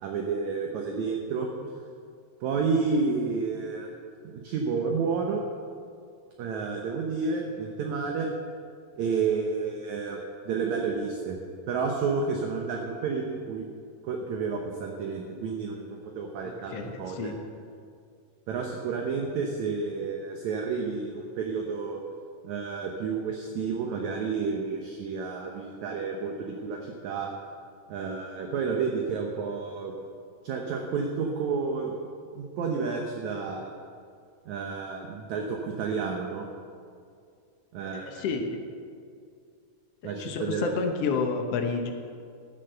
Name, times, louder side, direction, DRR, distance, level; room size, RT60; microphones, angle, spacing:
voice 1, 0.0-1.5 2.4-3.9 4.2-5.4 6.4-8.3 9.0-10.2 10.4-11.4 11.7-13.7 14.0-17.3 18.5-22.0 22.4-27.3 27.9-29.9 30.4-32.0 32.4-33.7 34.5-36.5 37.7-38.2 40.0-40.7, right 5 dB, 70° right, 1 dB, 2.0 m, -30 dB
voice 2, 16.7-17.4 37.9-38.6 40.0-41.9, left 5 dB, 70° left, 5 dB, 1.5 m, -30 dB
14.5 x 7.4 x 6.7 m, 2.2 s
omnidirectional pair, 4.0 m